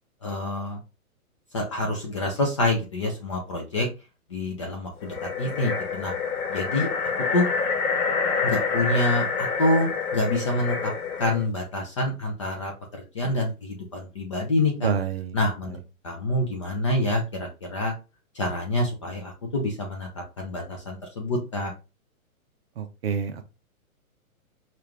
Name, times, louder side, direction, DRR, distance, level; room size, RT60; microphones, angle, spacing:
voice 1, 0.2-0.8 1.5-3.9 4.3-6.1 6.5-6.9 7.3-7.5 8.4-10.9 11.2-14.9 15.3-15.8 16.0-17.9 18.3-21.7, left 1 dB, 25° left, 1 dB, 0.5 m, -27 dB
sound 1, 5.0-11.5, left 5 dB, 80° left, 1.3 m, -27 dB
voice 2, 14.8-15.4 15.7-15.8 22.8-23.4, right 7 dB, 45° right, 8 dB, 0.7 m, -28 dB
4.7 x 2.5 x 3.4 m, 0.29 s
hypercardioid pair, 155°, 43 cm